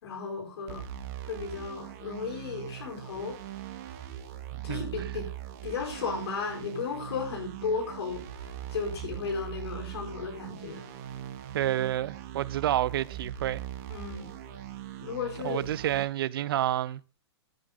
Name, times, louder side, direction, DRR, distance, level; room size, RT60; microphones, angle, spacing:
voice 1, 0.0-0.9 1.2-3.4 4.6-5.3 5.6-10.9 13.9-14.3 15.0-15.7, left 5 dB, 70° left, 4.5 m, -35 dB
sound 1, 0.7-16.0, right 11 dB, 40° right, 1.4 m, -41 dB
voice 2, 4.7-5.1 11.5-13.7 15.4-17.0, right 12 dB, 60° right, 0.5 m, -29 dB
10.5 x 9.1 x 3.9 m
hypercardioid pair, 160°, 14 cm